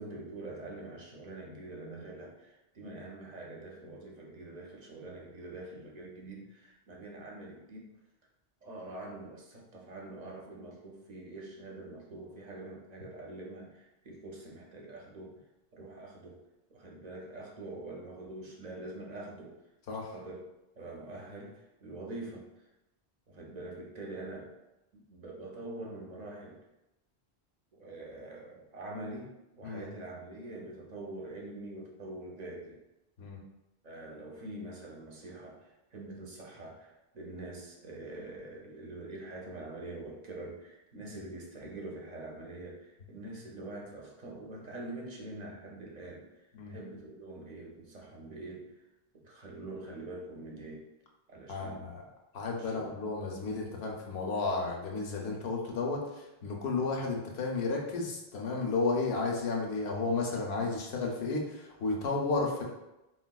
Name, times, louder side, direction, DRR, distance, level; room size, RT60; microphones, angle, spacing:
voice 1, 0.0-7.9 8.6-15.3 15.7-16.4 16.7-19.6 19.9-20.4 20.8-22.5 23.3-24.5 24.9-26.6 27.7-32.8 33.8-46.3 46.7-48.7 49.1-50.8 51.3-51.9 52.6-53.1 56.7-56.9, right 2 dB, 50° right, -2 dB, 0.6 m, -45 dB
voice 2, 51.5-52.0 52.3-56.0 56.4-62.6, left 3 dB, 80° left, 0 dB, 0.9 m, -32 dB
3.8 x 2.3 x 2.2 m, 0.95 s
omnidirectional pair, 1.0 m